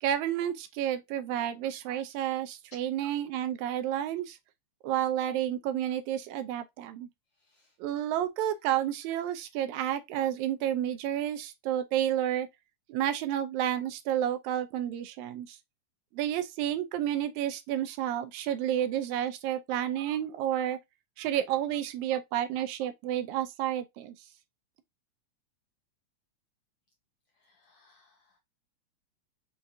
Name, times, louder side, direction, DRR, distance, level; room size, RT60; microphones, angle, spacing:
voice 1, 0.0-4.4 4.8-7.1 7.8-12.5 12.9-15.6 16.1-20.8 21.2-24.1, right 11 dB, 80° right, 1.8 m, -30 dB
voice 2, 7.3-7.8 27.3-28.4, left 1 dB, 85° left, 1.3 m, -60 dB
5.3 x 2.4 x 2.5 m
omnidirectional pair, 3.4 m